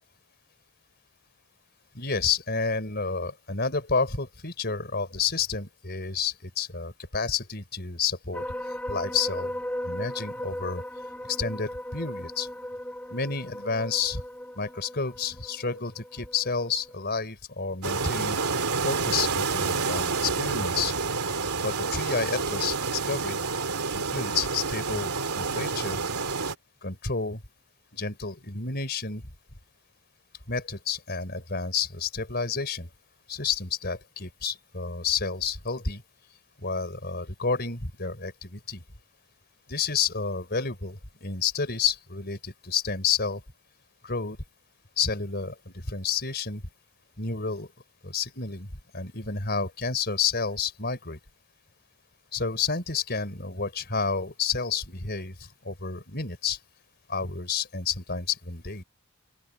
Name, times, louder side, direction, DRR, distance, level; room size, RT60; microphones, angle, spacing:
voice 1, 1.9-8.4 8.9-9.6 9.8-10.8 11.3-12.5 13.1-14.2 14.5-18.4 18.8-20.9 21.6-23.4 23.9-26.0 26.8-27.4 27.9-29.2 30.5-32.9 33.3-36.0 36.6-38.8 39.7-43.4 44.0-44.4 45.0-46.6 47.2-47.7 48.0-48.7 48.9-51.2 52.3-55.4 55.6-56.6 57.1-58.8, left 5 dB, 45° left, 4.6 m, -30 dB
sound 1, 8.3-17.0, left 1 dB, 5° left, 4.2 m, -37 dB
sound 2, 17.8-26.6, right 4 dB, 90° right, 2.6 m, -28 dB
open air
head